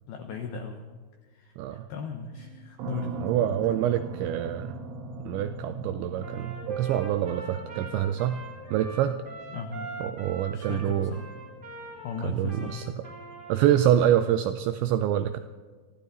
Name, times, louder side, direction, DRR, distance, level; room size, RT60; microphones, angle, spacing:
voice 1, 0.1-0.9 1.3-3.2 9.5-10.0 10.5-11.3 12.0-12.9, left 4 dB, 80° left, 4 dB, 2.2 m, -37 dB
voice 2, 1.6-1.9 3.2-4.7 5.3-8.4 8.7-9.2 10.0-11.1 12.2-12.9 13.5-15.4, right 11 dB, 85° right, 9 dB, 2.6 m, -26 dB
sound 1, 2.4-14.2, right 4 dB, 70° right, 3.0 m, -41 dB
Trumpet, 6.2-14.0, right 2 dB, 45° right, 0.6 m, -43 dB
24.0 x 15.0 x 4.0 m, 1.5 s
omnidirectional pair, 5.8 m